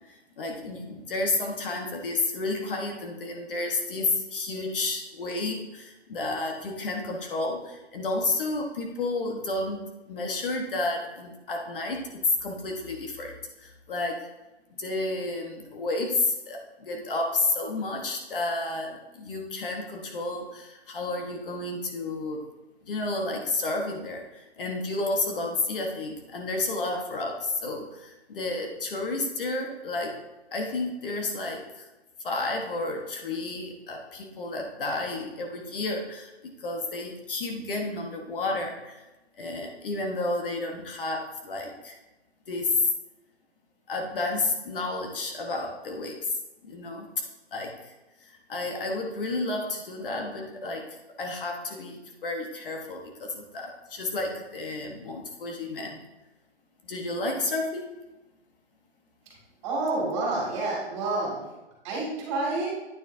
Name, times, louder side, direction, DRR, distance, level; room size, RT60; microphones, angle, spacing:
voice 1, 0.1-9.8 10.1-14.3 14.8-22.4 22.8-30.2 30.5-31.9 32.2-39.0 39.4-42.0 42.5-42.9 43.9-46.3 46.6-47.1 47.5-47.9 48.2-56.0 56.8-57.9, left 2 dB, 55° left, 1 dB, 1.3 m, -31 dB
voice 2, 59.6-61.4 61.8-62.7, right 2 dB, 25° right, -4 dB, 2.5 m, -28 dB
9.2 x 7.0 x 2.7 m, 1.0 s
hypercardioid pair, 165°, 33 cm